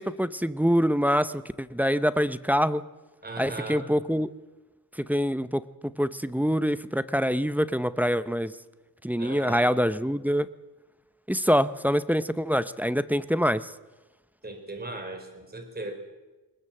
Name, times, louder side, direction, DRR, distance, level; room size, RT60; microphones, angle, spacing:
voice 1, 0.0-2.8 3.4-4.3 5.0-8.5 9.0-10.5 11.3-13.7, equal, 5° right, 13 dB, 0.6 m, -25 dB
voice 2, 3.2-3.9 9.2-9.7 14.4-15.9, right 2 dB, 25° right, 4 dB, 4.6 m, -37 dB
21.5 x 20.0 x 7.6 m, 1.2 s
wide cardioid pair, 120°, 41 cm